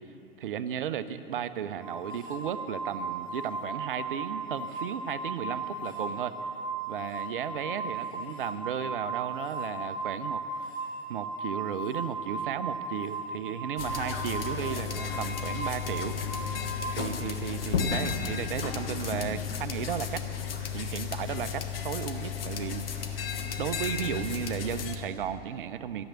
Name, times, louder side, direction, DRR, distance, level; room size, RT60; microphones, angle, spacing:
voice 1, 0.4-6.4 6.9-10.4 11.1-16.2 16.9-20.3 20.7-26.0, right 9 dB, 55° right, 12 dB, 0.7 m, -34 dB
sound 1, 1.8-16.7, right 3 dB, 15° left, 4.0 m, -36 dB
sound 2, 13.8-25.0, left 7 dB, 65° left, 1.4 m, -33 dB
13.0 x 8.1 x 9.4 m, 2.8 s
figure-of-eight pair, 100°, 31 cm